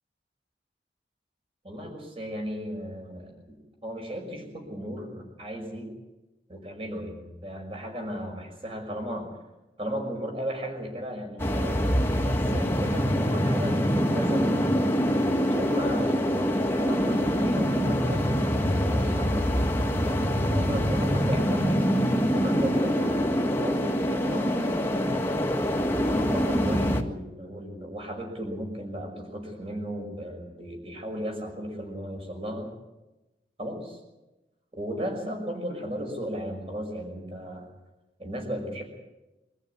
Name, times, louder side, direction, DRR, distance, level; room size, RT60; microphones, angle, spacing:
voice 1, 1.6-5.9 6.5-9.3 9.8-11.9 12.2-14.5 15.4-19.8 20.0-24.6 26.0-32.7 33.6-34.0 34.7-37.7 38.2-38.8, equal, 35° right, 3 dB, 5.7 m, -36 dB
sound 1, 11.4-27.0, equal, 15° left, 1.8 m, -25 dB
24.5 x 14.5 x 9.6 m, 1.0 s
head